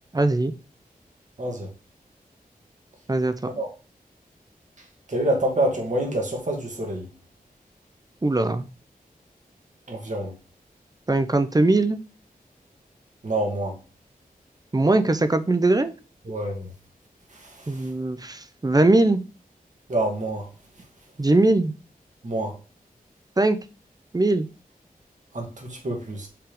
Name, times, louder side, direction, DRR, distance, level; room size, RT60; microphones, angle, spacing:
voice 1, 0.1-0.5 3.1-3.3 8.2-8.7 11.1-12.0 14.7-15.9 17.7-19.2 21.2-21.7 23.4-23.6 24.1-24.5, right 2 dB, 25° right, 0.6 m, -20 dB
voice 2, 1.4-1.7 3.4-3.7 5.1-7.1 9.9-10.3 13.2-13.8 16.3-16.7 19.9-20.4 22.2-22.5 25.3-26.3, right 1 dB, 50° right, 2.2 m, -26 dB
5.7 x 3.7 x 5.2 m
wide cardioid pair, 90°, 15 cm